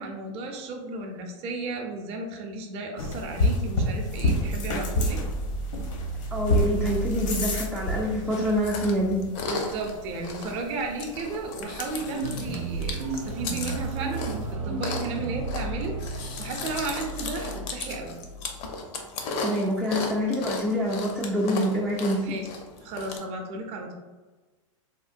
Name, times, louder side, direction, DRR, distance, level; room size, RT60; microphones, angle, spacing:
voice 1, 0.0-5.2 9.5-18.2 22.1-22.5 22.8-23.9, right 3 dB, 35° right, 2 dB, 0.6 m, -34 dB
sound 1, 3.0-14.5, left 1 dB, 70° left, 0.8 m, -30 dB
voice 2, 6.3-9.2 19.4-22.4, equal, 5° right, -4 dB, 0.3 m, -26 dB
Chewing mastication, 8.3-23.2, left 3 dB, 40° left, 0.5 m, -36 dB
sound 2, 12.1-18.7, right 3 dB, 90° right, 0.4 m, -34 dB
3.6 x 2.1 x 2.5 m, 1.2 s
hypercardioid pair, 120°, 17 cm